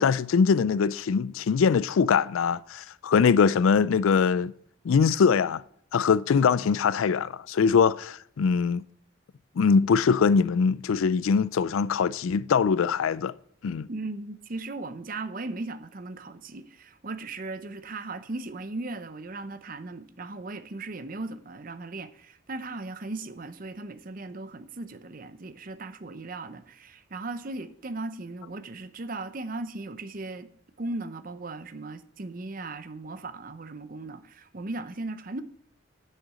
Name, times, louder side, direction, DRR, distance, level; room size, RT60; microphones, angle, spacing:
voice 1, 0.0-4.5 4.8-5.6 5.9-8.8 9.6-13.3 13.6-13.9, left 6 dB, 80° left, 0.4 m, -22 dB
voice 2, 13.9-30.5 30.8-35.4, right 2 dB, 40° right, 0.7 m, -37 dB
7.9 x 6.5 x 7.5 m
head